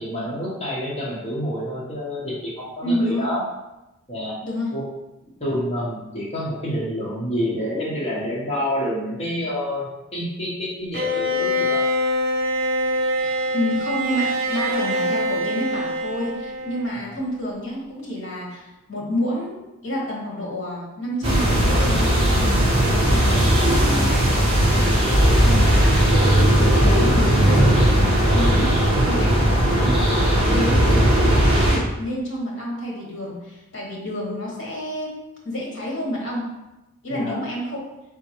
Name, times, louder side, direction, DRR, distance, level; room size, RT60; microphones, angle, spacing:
voice 1, 0.0-3.4 4.1-4.4 4.7-4.8 5.4-11.8 17.0-17.2 37.1-37.4, equal, 30° left, -6 dB, 0.8 m, -28 dB
voice 2, 2.8-3.3 4.4-4.7 13.1-19.6 19.8-25.0 25.4-27.7 28.0-28.7 29.0-30.0 30.5-36.5 37.0-37.8, left 1 dB, 55° left, -3 dB, 1.4 m, -29 dB
Bowed string instrument, 10.9-17.0, equal, 45° right, 0.5 m, -24 dB
sound 1, 21.2-31.8, right 1 dB, 25° right, 0.9 m, -17 dB
4.3 x 3.6 x 3.0 m, 0.99 s
head